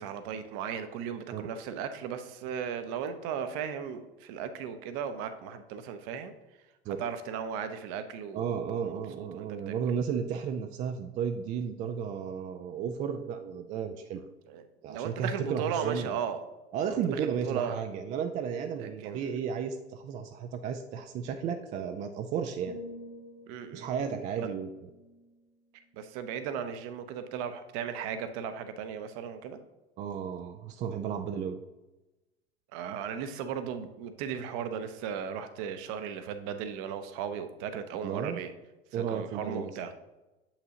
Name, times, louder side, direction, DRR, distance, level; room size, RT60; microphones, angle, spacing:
voice 1, 0.0-6.3 6.9-9.7 14.5-16.4 16.9-17.8 18.8-19.3 23.5-23.9 24.4-24.5 25.9-29.6 32.7-38.5 38.9-39.9, right 7 dB, 45° right, 10 dB, 0.7 m, -36 dB
voice 2, 8.3-14.2 14.8-16.2 16.7-22.8 23.7-24.9 30.0-31.6 38.0-38.4 38.9-39.7, right 7 dB, 25° right, 7 dB, 0.3 m, -33 dB
sound 1, 22.7-26.6 27.1-27.3, left 2 dB, 50° left, 0.9 m, -50 dB
7.7 x 5.7 x 2.8 m, 1.0 s
figure-of-eight pair, 75°, 32 cm